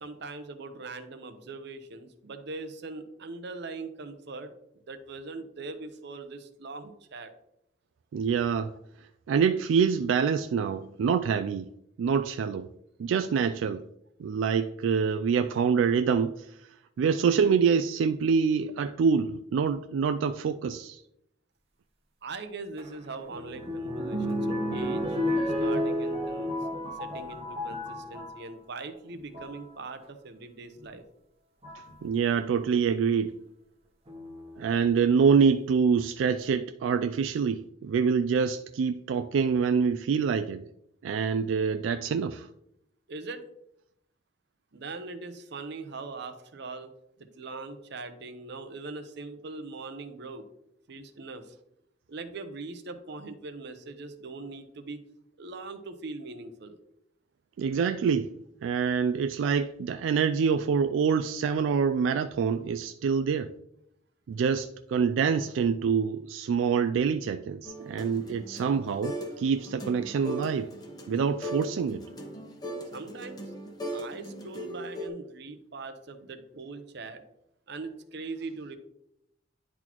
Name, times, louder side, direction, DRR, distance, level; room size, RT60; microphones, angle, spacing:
voice 1, 0.0-7.3 22.2-25.2 25.6-26.6 27.0-31.0 43.1-43.4 44.7-46.9 47.2-50.4 50.9-51.5 52.1-55.0 55.4-56.8 72.9-73.4 73.9-77.2 77.7-78.8, right 3 dB, 65° right, 0.7 m, -41 dB
voice 2, 8.1-8.7 9.3-11.7 12.0-12.7 13.0-13.8 14.2-16.5 17.0-21.0 32.0-33.3 34.6-40.6 41.0-42.5 57.6-58.3 58.6-63.5 64.3-70.7 71.1-72.0, right 6 dB, 90° right, 0.3 m, -26 dB
sound 1, 22.8-28.4 29.1-29.6 30.8-30.9 31.6-31.9 34.1-34.7 35.4-35.5 35.7-35.8, equal, 30° right, 1.0 m, -31 dB
sound 2, 67.6-69.4 69.6-75.1, equal, 20° left, 0.9 m, -38 dB
10.5 x 4.1 x 3.0 m
head